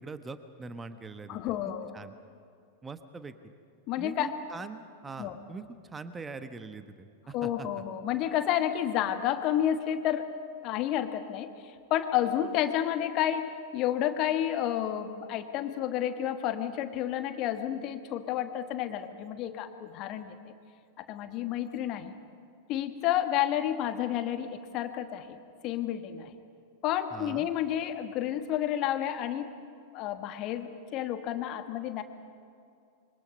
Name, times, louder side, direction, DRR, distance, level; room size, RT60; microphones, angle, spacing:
voice 1, 0.0-1.5 1.9-2.1 2.8-3.3 4.0-7.7 27.1-27.5, right 4 dB, 15° right, 10 dB, 1.2 m, -42 dB
voice 2, 1.3-1.9 3.9-4.3 5.2-5.4 7.3-10.3 10.6-20.5 21.0-22.1 22.7-26.3 26.8-29.6 29.9-32.0, left 11 dB, 40° left, 9 dB, 1.4 m, -30 dB
26.0 x 24.0 x 5.3 m, 2.4 s
figure-of-eight pair, 90°, 0 cm